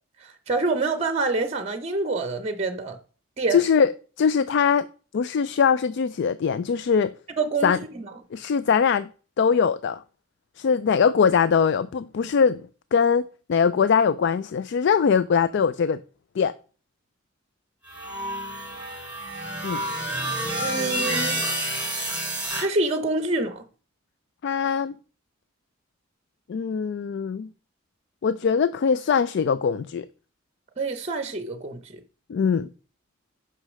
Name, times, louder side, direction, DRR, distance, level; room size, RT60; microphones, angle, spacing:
voice 1, 0.2-3.0 3.4-3.6 7.4-8.1 20.6-21.4 22.6-23.6 30.8-32.0, right 3 dB, 30° right, 0.7 m, -26 dB
voice 2, 3.5-4.9 5.1-7.1 7.6-7.8 8.3-9.1 9.4-10.0 10.6-12.6 12.9-16.0 16.4-16.5 19.6-19.8 24.4-24.9 26.5-27.5 28.2-30.1 32.3-32.7, left 6 dB, 55° left, 0.3 m, -22 dB
sound 1, 17.9-22.6, right 1 dB, 5° right, 2.6 m, -29 dB
6.4 x 5.6 x 6.3 m
head